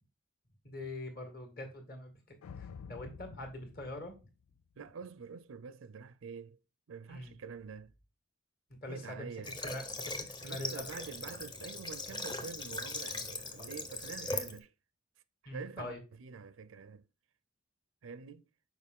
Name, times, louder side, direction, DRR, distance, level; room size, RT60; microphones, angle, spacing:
voice 1, 0.6-4.2 7.1-7.3 8.8-9.3 9.6-10.9 13.6-13.7 15.5-16.0, left 1 dB, 45° left, 1.9 m, -44 dB
sound 1, 2.4-4.9, left 6 dB, 85° left, 0.4 m, -50 dB
voice 2, 4.8-6.6 6.9-7.9 8.9-9.6 10.4-14.7 15.4-15.9 16.2-17.0 18.0-18.4, right 5 dB, 65° right, 0.4 m, -46 dB
Water / Water tap faucet, 9.4-14.6, left 2 dB, 20° left, 0.8 m, -40 dB
6.6 x 4.8 x 3.6 m
head